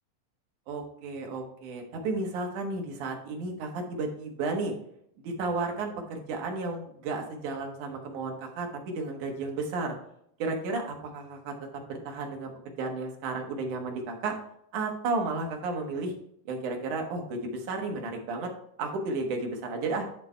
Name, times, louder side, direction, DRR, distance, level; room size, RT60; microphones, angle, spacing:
voice 1, 0.7-4.7 5.2-10.0 10.4-11.5 11.9-12.5 12.8-14.3 14.7-16.1 16.5-18.5 18.8-20.0, right 3 dB, 70° right, 2 dB, 2.8 m, -33 dB
10.5 x 4.2 x 4.4 m, 0.73 s
omnidirectional pair, 3.7 m